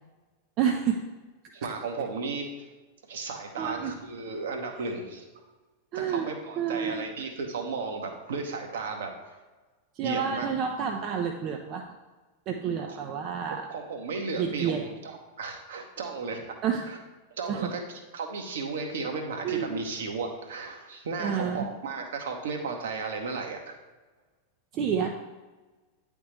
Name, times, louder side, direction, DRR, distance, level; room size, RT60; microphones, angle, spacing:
voice 1, 0.6-1.0 3.6-4.0 5.9-6.3 6.6-7.1 9.9-11.8 12.5-13.7 14.4-14.9 16.6-16.9 17.5-17.7 19.4-19.8 21.2-21.7 24.7-25.1, right 7 dB, 35° right, 3 dB, 0.5 m, -29 dB
voice 2, 1.5-2.5 3.1-5.4 5.9-9.1 10.0-10.5 12.9-13.0 13.7-16.4 17.4-17.8 18.1-23.7, right 4 dB, 60° right, 3 dB, 0.9 m, -34 dB
9.4 x 3.5 x 3.2 m, 1.2 s
figure-of-eight pair, 90°, 0 cm